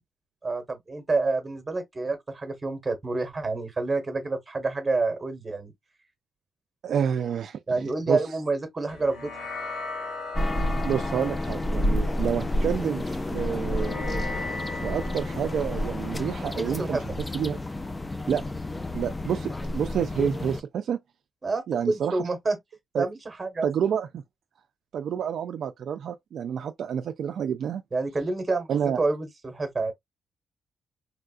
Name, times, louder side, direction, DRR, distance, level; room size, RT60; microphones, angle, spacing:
voice 1, 0.4-5.7 7.7-9.3 16.6-17.2 21.4-22.6 23.0-23.7 27.9-28.7 29.0-29.9, right 3 dB, 20° right, 1.2 m, -28 dB
voice 2, 6.8-8.2 10.8-13.9 14.8-17.6 18.3-18.4 18.9-21.0 21.7-22.2 22.9-23.1 23.6-24.2 24.9-27.8 28.7-29.0, right 8 dB, 65° right, 0.3 m, -29 dB
sound 1, 8.9-17.6, left 3 dB, 80° left, 1.4 m, -39 dB
sound 2, 10.3-20.6, left 1 dB, 15° left, 0.4 m, -30 dB
3.4 x 2.4 x 2.4 m
cardioid pair, 130°, 0 cm